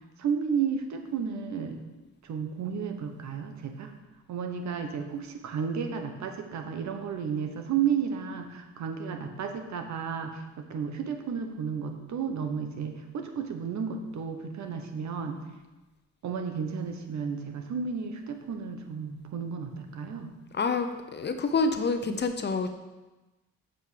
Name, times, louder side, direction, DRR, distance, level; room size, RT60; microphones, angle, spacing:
voice 1, 0.2-1.8 2.2-3.9 4.3-15.4 16.2-20.3, right 6 dB, 65° right, 5 dB, 1.2 m, -32 dB
voice 2, 20.5-22.7, left 4 dB, 35° left, 7 dB, 0.8 m, -27 dB
7.6 x 5.3 x 6.7 m, 1.1 s
cardioid pair, 90°, 30 cm